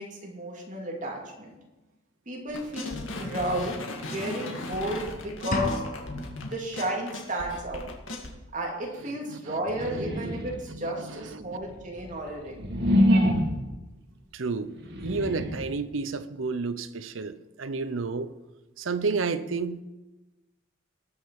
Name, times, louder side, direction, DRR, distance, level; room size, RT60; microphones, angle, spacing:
voice 1, 0.0-1.5 2.3-5.8 6.1-7.8 8.5-12.7, right 1 dB, 40° right, -1 dB, 2.7 m, -33 dB
sound 1, 2.5-8.3, left 2 dB, 85° left, 2.0 m, -37 dB
sound 2, 5.5-6.5, left 2 dB, 45° left, 1.2 m, -31 dB
voice 2, 9.1-9.6 9.8-10.0 10.4-11.6 14.3-14.7 15.0-18.3 18.8-19.8, right 4 dB, 85° right, 13 dB, 0.7 m, -31 dB
sound 3, 9.6-10.7 11.3-13.8 14.7-15.8, equal, 60° right, 1.8 m, -25 dB
19.0 x 6.5 x 4.8 m, 1.1 s
head